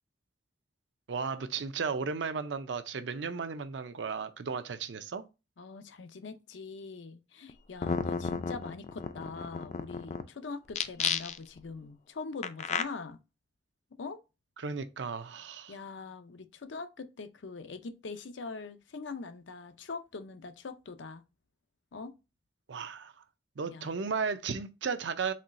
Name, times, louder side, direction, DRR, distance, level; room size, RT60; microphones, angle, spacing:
voice 1, 1.1-5.2 14.6-15.7 22.7-23.1 23.6-25.3, right 5 dB, 80° right, 0.5 m, -35 dB
voice 2, 5.6-13.2 13.9-14.2 15.7-21.2 21.9-22.1 23.7-23.9, left 4 dB, 90° left, 0.6 m, -43 dB
sound 1, 7.5-7.6 7.8-10.2 10.7-11.6 12.4-12.8, left 6 dB, 40° left, 0.3 m, -32 dB
4.3 x 3.0 x 2.5 m
head